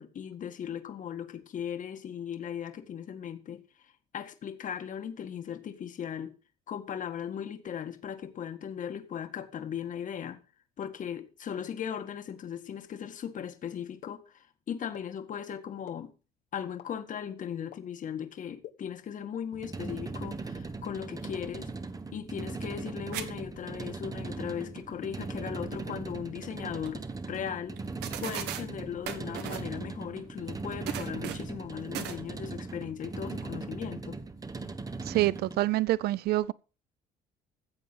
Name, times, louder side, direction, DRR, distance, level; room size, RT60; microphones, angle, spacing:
voice 1, 0.0-6.4 6.7-10.4 10.8-16.1 16.5-21.7 22.1-27.8 28.2-34.2, left 8 dB, 50° left, 1.9 m, -38 dB
sound 1, 14.0-14.1 14.9-15.0 15.9-16.0 16.8-16.9 17.7-17.8 18.6-18.7, left 12 dB, 75° left, 1.6 m, -44 dB
sound 2, 19.5-35.7, right 3 dB, 20° right, 1.2 m, -39 dB
sound 3, 23.1-23.3 23.6-23.7 26.4-26.5 26.8-26.9 27.8-27.9 28.0-28.6 29.0-29.7 30.8-31.5 31.9-32.2, right 10 dB, 90° right, 1.6 m, -36 dB
voice 2, 35.0-36.5, right 16 dB, 70° right, 0.6 m, -26 dB
15.0 x 7.8 x 5.7 m
cardioid pair, 110°, 17 cm